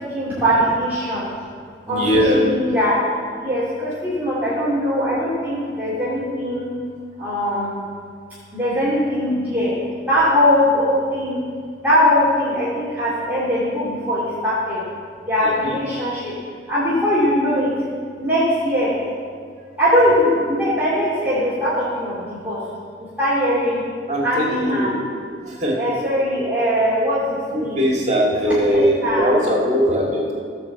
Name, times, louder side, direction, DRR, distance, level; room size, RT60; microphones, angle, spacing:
voice 1, 0.1-1.3 1.9-3.0 3.4-6.7 7.2-7.9 8.5-9.7 10.0-11.4 11.8-14.8 15.3-16.3 16.7-17.7 18.2-19.0 19.8-22.6 23.2-23.8 24.2-25.0 25.8-27.8 28.4-29.4, equal, 10° right, -11 dB, 2.5 m, -21 dB
voice 2, 1.9-2.3 15.4-15.8 24.1-25.0 25.4-25.8 27.5-30.3, equal, 40° right, -3 dB, 2.3 m, -20 dB
16.5 x 5.5 x 7.2 m, 2.1 s
head